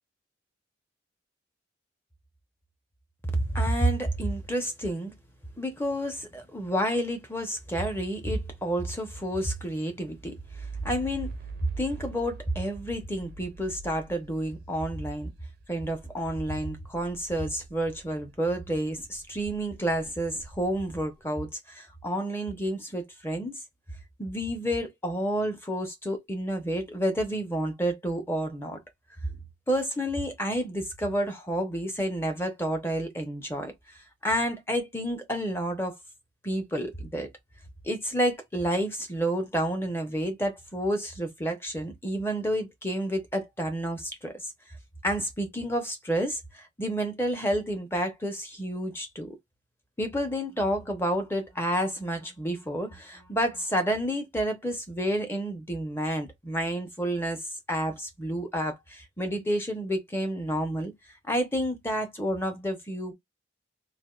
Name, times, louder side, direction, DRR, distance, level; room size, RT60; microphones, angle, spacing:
voice 1, 3.3-5.1 5.6-11.4 11.8-15.3 15.7-23.6 24.2-28.8 29.7-33.7 34.2-36.0 36.4-37.3 37.8-44.4 45.0-49.4 50.0-60.9 61.3-63.1, equal, 10° left, 0.6 m, -30 dB
sound 1, 10.1-18.3 18.7-21.3, right 4 dB, 50° right, 0.4 m, -44 dB
3.3 x 2.4 x 2.3 m
head